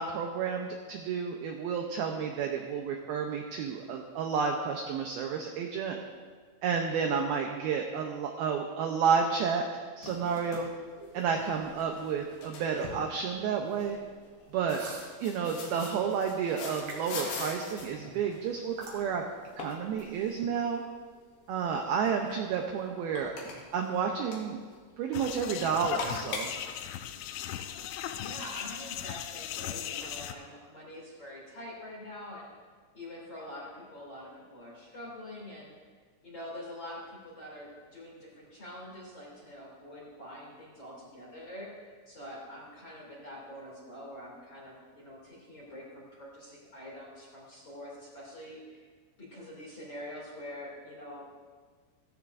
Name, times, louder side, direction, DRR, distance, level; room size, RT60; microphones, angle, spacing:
voice 1, 0.0-6.0 6.6-10.7 11.1-14.0 14.5-14.8 15.2-19.2 19.6-20.8 21.5-23.3 23.7-24.6 25.0-26.5, right 6 dB, 80° right, 2 dB, 2.2 m, -31 dB
sound 1, 10.0-27.7, left 3 dB, 65° left, 3.3 m, -45 dB
sound 2, 11.0-11.2 12.8-13.0 14.8-15.1 16.8-17.1 18.8-19.0, right 3 dB, 65° right, 4.5 m, -41 dB
sound 3, 25.1-30.3, left 11 dB, 90° left, 3.0 m, -38 dB
voice 2, 28.2-32.5 32.9-35.7 36.2-48.9 49.2-51.3, left 1 dB, 30° left, -5 dB, 2.6 m, -45 dB
16.5 x 14.5 x 2.6 m, 1.5 s
omnidirectional pair, 5.3 m